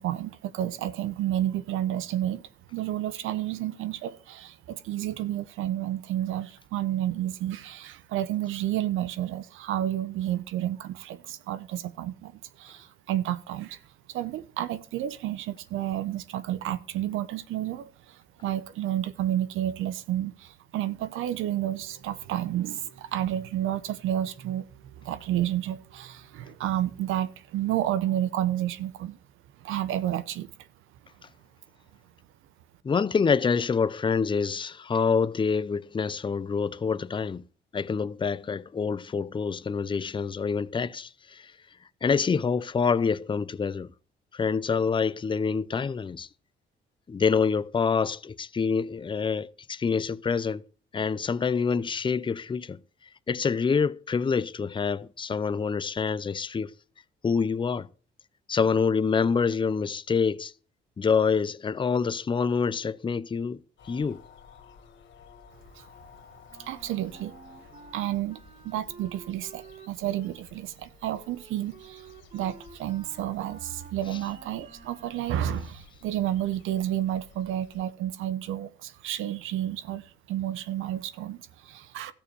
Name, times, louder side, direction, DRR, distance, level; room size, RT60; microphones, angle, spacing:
voice 1, 0.0-2.4 2.7-12.3 12.6-13.8 14.1-24.7 25.0-29.2 29.6-30.5 65.8-65.9 66.6-67.4 67.9-82.1, right 12 dB, 90° right, 1.0 m, -31 dB
sound 1, 21.8-27.0, right 4 dB, 55° right, 2.3 m, -58 dB
voice 2, 32.8-37.4 37.7-41.5 42.0-43.9 44.3-46.3 47.1-50.6 50.9-52.8 53.3-56.7 57.2-57.9 58.5-60.5 61.0-63.6 63.9-64.2, left 5 dB, 25° left, 0.6 m, -26 dB
sound 2, 63.8-77.8, left 6 dB, 70° left, 2.5 m, -55 dB
Wind instrument woodwind instrument, 66.5-75.5, right 4 dB, 35° right, 3.1 m, -51 dB
13.5 x 6.9 x 6.9 m
cardioid pair, 90°, 20 cm